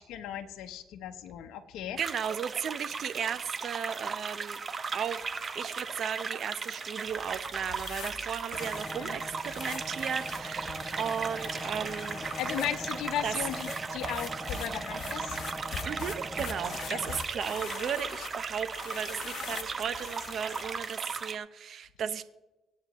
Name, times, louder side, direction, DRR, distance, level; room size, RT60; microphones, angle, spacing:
voice 1, 0.1-2.0 9.0-9.2 12.4-15.4 16.9-17.0, left 10 dB, 90° left, 6 dB, 0.8 m, -36 dB
sound 1, 2.0-21.4, right 5 dB, 40° right, 0.9 m, -37 dB
voice 2, 2.0-4.6 4.9-5.2 5.5-12.3 13.2-13.4 15.8-22.2, right 8 dB, 65° right, 12 dB, 0.8 m, -35 dB
sound 2, 7.1-20.8, left 7 dB, 70° left, 1.1 m, -44 dB
sound 3, 8.6-17.2, equal, 5° right, 0.8 m, -42 dB
24.5 x 8.6 x 3.0 m, 1.0 s
cardioid pair, 90°, 0 cm